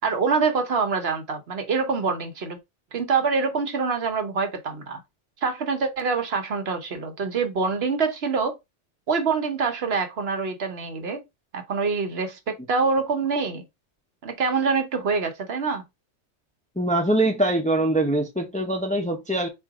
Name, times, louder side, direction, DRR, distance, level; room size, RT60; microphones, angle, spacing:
voice 1, 0.0-2.6 2.9-5.0 5.4-8.6 9.1-11.2 11.5-13.6 14.2-15.8, right 5 dB, 60° right, 1.1 m, -25 dB
voice 2, 16.8-19.5, right 1 dB, 10° left, 0.7 m, -23 dB
3.7 x 2.7 x 4.7 m
omnidirectional pair, 1.2 m